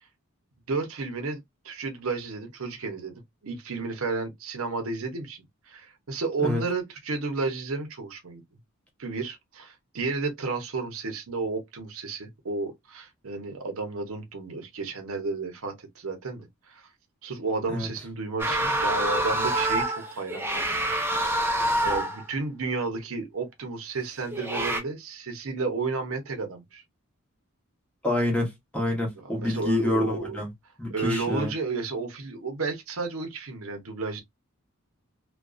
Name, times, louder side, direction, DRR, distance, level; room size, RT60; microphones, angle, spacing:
voice 1, 0.7-8.4 9.0-16.8 17.2-21.5 21.8-26.8 29.2-30.4 30.9-34.2, right 3 dB, 80° right, 0.7 m, -32 dB
sound 1, 18.4-22.3 24.3-24.8, right 1 dB, 10° right, 0.5 m, -26 dB
voice 2, 28.0-30.5 30.8-31.5, left 1 dB, 5° left, 0.9 m, -27 dB
2.4 x 2.2 x 2.3 m
head